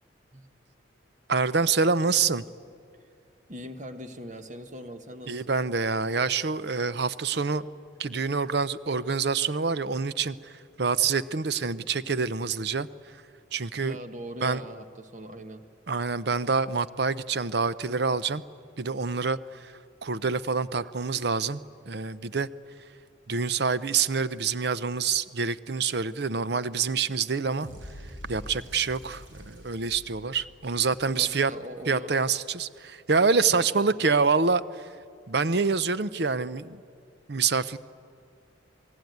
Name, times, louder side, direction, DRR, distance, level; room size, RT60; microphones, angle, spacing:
voice 1, 1.3-2.4 5.3-7.7 8.0-10.5 10.8-12.9 13.5-14.0 14.4-14.6 15.9-18.4 18.8-19.7 20.0-22.5 23.3-27.7 28.3-31.5 31.9-34.9 35.3-36.8 37.3-37.8, right 5 dB, 55° right, 15 dB, 0.7 m, -26 dB
voice 2, 3.5-5.6 13.8-15.7 31.1-32.1 33.5-33.9, equal, 40° right, 8 dB, 1.4 m, -41 dB
sound 1, 27.6-31.7, equal, 85° right, 6.3 m, -45 dB
27.5 x 19.0 x 9.4 m, 2.3 s
head